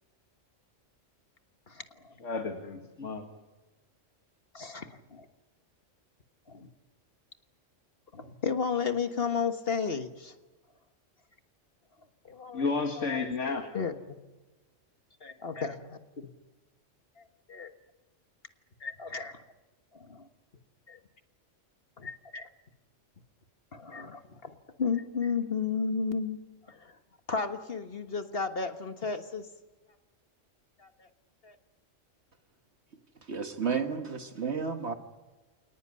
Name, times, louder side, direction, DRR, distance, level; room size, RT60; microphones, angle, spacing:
voice 1, 1.7-2.1 4.5-5.2 6.5-6.7 8.1-10.3 12.2-12.7 13.0-13.9 15.2-15.7 17.2-17.3 17.5-17.7 18.8-19.4 20.0-20.3 20.9-21.0 22.0-22.5 23.7-24.5 24.8-26.4 26.7-26.9 27.3-29.5 30.8-31.1 31.4-31.5, left 5 dB, 50° left, 8 dB, 1.6 m, -33 dB
voice 2, 2.2-3.3 12.5-13.6, left 4 dB, 70° left, 4 dB, 2.2 m, -32 dB
voice 3, 33.3-34.9, right 5 dB, 60° right, 6 dB, 1.8 m, -32 dB
27.5 x 19.0 x 9.7 m, 1.2 s
omnidirectional pair, 1.3 m